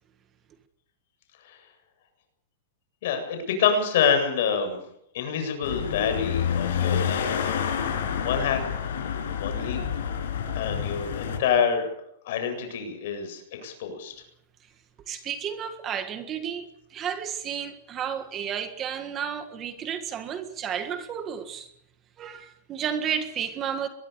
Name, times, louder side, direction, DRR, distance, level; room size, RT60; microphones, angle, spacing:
voice 1, 3.0-4.8 5.1-7.8 8.2-8.6 9.4-9.8 10.5-11.9 12.2-14.1, left 7 dB, 55° left, 7.9 m, -27 dB
sound 1, 5.6-11.4, left 8 dB, 75° left, 7.5 m, -28 dB
voice 2, 15.1-21.7 22.2-23.9, right 8 dB, 20° right, 1.7 m, -32 dB
23.5 x 21.5 x 7.1 m
supercardioid pair, 175°, 0 cm